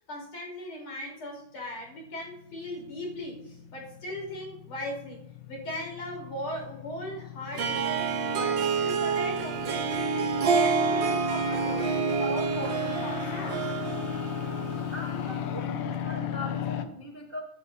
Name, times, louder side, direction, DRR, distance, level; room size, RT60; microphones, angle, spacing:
voice 1, 0.0-5.2 5.5-8.0 8.4-13.7, left 1 dB, 60° left, 0 dB, 6.5 m, -38 dB
sound 1, 2.2-16.9, left 10 dB, 85° left, 2.5 m, -37 dB
Harp, 7.5-15.3, right 5 dB, 60° right, 1.2 m, -28 dB
voice 2, 14.9-17.4, left 1 dB, 35° right, 0 dB, 0.9 m, -40 dB
23.5 x 10.5 x 2.9 m, 0.81 s
omnidirectional pair, 3.5 m